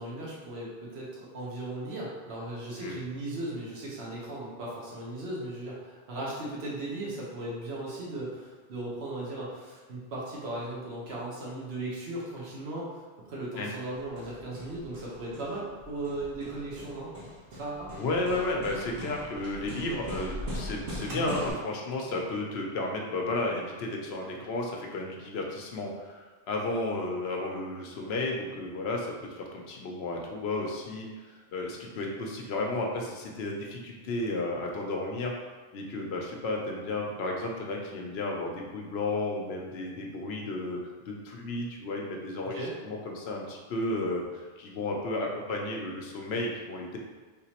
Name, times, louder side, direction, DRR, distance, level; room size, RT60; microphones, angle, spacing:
voice 1, 0.0-13.0 13.3-17.1 17.6-17.9 21.1-21.3 42.4-42.7, right 2 dB, 80° right, -5 dB, 1.2 m, -37 dB
Hammer, 14.0-21.5, equal, 60° right, 1.0 m, -40 dB
voice 2, 17.9-35.3 35.7-40.8 41.0-47.0, left 2 dB, 80° left, 0 dB, 0.9 m, -33 dB
3.6 x 2.9 x 2.8 m, 1.4 s
omnidirectional pair, 1.1 m